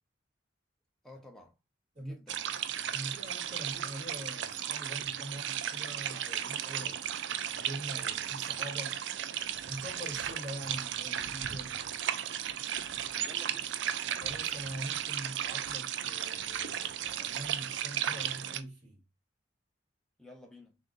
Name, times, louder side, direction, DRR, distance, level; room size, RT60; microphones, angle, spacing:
voice 1, 1.0-1.6 2.0-2.5 13.2-13.8 20.2-20.8, left 1 dB, ahead, 0.7 m, -52 dB
sound 1, 2.3-18.6, right 10 dB, 75° right, 0.4 m, -35 dB
voice 2, 2.9-7.0 7.5-9.0 9.6-12.0 14.2-19.0, right 1 dB, 40° right, 2.5 m, -44 dB
6.6 x 2.6 x 2.5 m
head